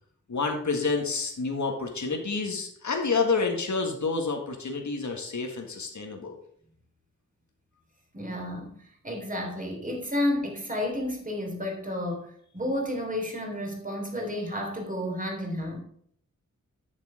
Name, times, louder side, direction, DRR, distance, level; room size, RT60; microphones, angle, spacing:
voice 1, 0.3-6.3, left 4 dB, 65° left, 2 dB, 1.8 m, -29 dB
voice 2, 8.1-15.8, left 1 dB, 25° right, 1 dB, 3.3 m, -31 dB
9.2 x 6.7 x 5.0 m, 0.64 s
wide cardioid pair, 75°, 31 cm